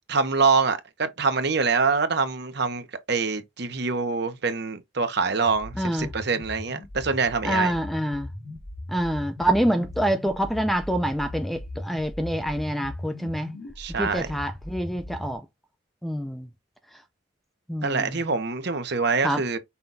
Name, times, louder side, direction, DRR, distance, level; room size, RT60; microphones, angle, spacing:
voice 1, 0.1-7.7 13.8-14.3 17.8-19.6, right 4 dB, 55° right, 0.8 m, -25 dB
sound 1, 5.4-15.4, left 1 dB, 65° left, 1.7 m, -38 dB
voice 2, 5.8-6.1 7.4-8.3 8.9-13.5 14.0-15.4 16.0-16.5 17.7-18.2 19.2-19.4, right 1 dB, ahead, 0.4 m, -26 dB
5.7 x 2.3 x 3.9 m
head